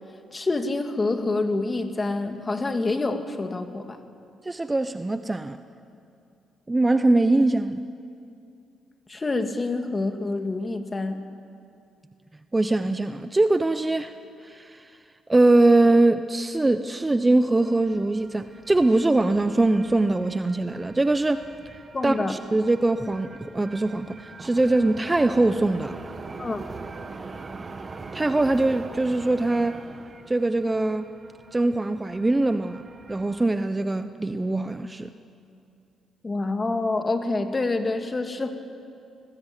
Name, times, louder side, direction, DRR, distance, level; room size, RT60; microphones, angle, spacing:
voice 1, 0.3-4.0 9.1-11.2 21.9-22.3 26.4-26.6 36.2-38.5, left 3 dB, 25° left, 6 dB, 2.2 m, -27 dB
voice 2, 4.4-5.6 6.7-7.9 12.5-14.1 14.4-14.8 15.3-21.5 22.0-26.0 28.1-29.8 30.3-31.1 31.5-32.8 33.1-35.1, right 2 dB, 15° right, 10 dB, 0.8 m, -22 dB
sound 1, 17.6-33.5, right 4 dB, 35° right, 1.6 m, -43 dB
28.0 x 19.5 x 9.1 m, 2.5 s
cardioid pair, 90°, 0 cm